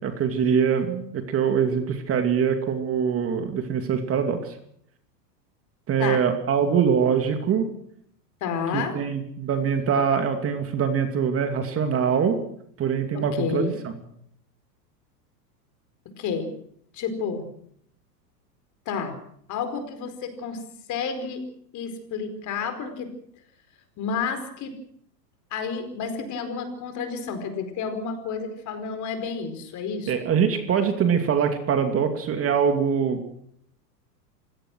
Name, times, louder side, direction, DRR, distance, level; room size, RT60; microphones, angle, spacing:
voice 1, 0.0-4.5 5.9-7.7 8.7-12.4 12.8-13.7 30.1-33.2, right 7 dB, 25° right, 6 dB, 2.5 m, -23 dB
voice 2, 8.4-8.9 13.1-13.7 16.2-16.5 16.9-17.5 18.9-19.1 19.5-20.6 20.9-21.4 21.7-23.1 24.0-24.8 25.5-30.1, left 5 dB, 35° left, 8 dB, 4.7 m, -30 dB
26.0 x 17.0 x 6.3 m, 0.68 s
hypercardioid pair, 125°, 49 cm